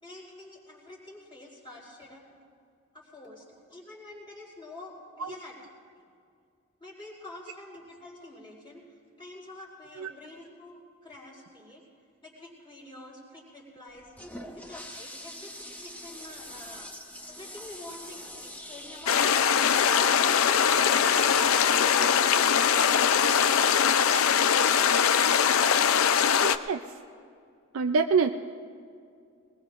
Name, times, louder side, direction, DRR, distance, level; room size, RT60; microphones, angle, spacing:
voice 1, 0.0-2.2 2.9-5.6 6.8-10.8 11.0-11.8 12.2-14.1 14.6-16.9 17.3-19.8 20.2-21.3 21.7-22.5, left 2 dB, 25° left, -4 dB, 4.2 m, -46 dB
Toilet flush, 13.9-23.3, left 1 dB, 5° left, 0.9 m, -45 dB
sound 1, 19.1-26.6, left 7 dB, 85° left, 0.5 m, -22 dB
voice 2, 26.4-26.8 27.7-28.3, right 5 dB, 85° right, 5 dB, 0.5 m, -25 dB
22.0 x 20.5 x 2.5 m, 2.3 s
head